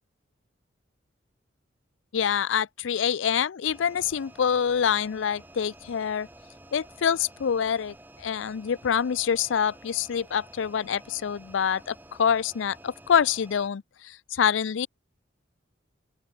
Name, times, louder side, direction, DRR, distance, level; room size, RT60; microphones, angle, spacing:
voice 1, 2.1-6.3 6.7-14.9, left 7 dB, 85° left, 0.4 m, -26 dB
sound 1, 3.7-13.7, right 1 dB, 10° right, 3.8 m, -51 dB
open air
head